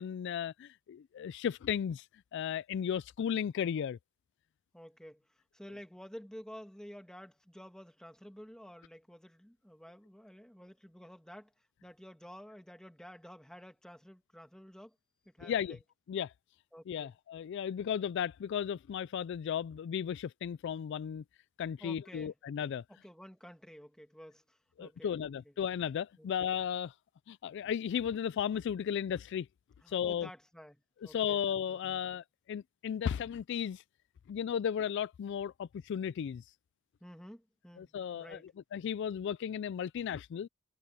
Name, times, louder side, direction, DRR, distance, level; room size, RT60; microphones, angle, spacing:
voice 1, 0.0-2.1 2.3-4.0 15.4-15.8 16.1-16.3 16.9-21.2 21.6-22.8 24.8-26.9 27.3-29.5 29.9-30.3 31.0-33.8 34.3-36.4 37.8-38.4 38.7-40.5, left 8 dB, 60° left, 0.3 m, -35 dB
voice 2, 4.7-15.0 15.2-15.8 16.7-17.1 21.8-22.3 22.9-25.5 26.2-26.3 29.8-31.4 31.7-32.0 37.0-38.5, equal, 5° left, 2.3 m, -52 dB
head